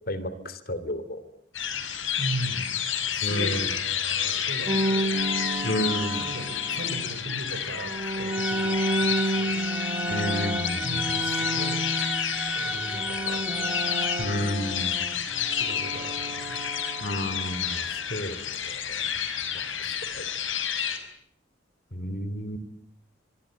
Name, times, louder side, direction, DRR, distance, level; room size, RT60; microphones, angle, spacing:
voice 1, 0.1-1.2 3.2-3.7 5.6-6.3 10.1-11.0 14.2-14.9 17.0-19.0 19.5-20.2 21.9-22.6, equal, 50° left, 14 dB, 3.1 m, -31 dB
sound 1, 1.5-21.0, left 8 dB, 90° left, 6.1 m, -30 dB
voice 2, 2.2-2.8 3.1-5.2 6.2-9.6 10.8-11.9 12.5-13.7 15.1-16.6, right 1 dB, 70° right, 11 dB, 5.8 m, -38 dB
sound 2, 4.7-7.1 7.7-12.6 12.8-17.8, right 1 dB, 25° right, 2.0 m, -31 dB
Bowed string instrument, 8.3-14.2, right 1 dB, 5° right, 2.5 m, -34 dB
25.5 x 24.0 x 8.9 m, 0.75 s
head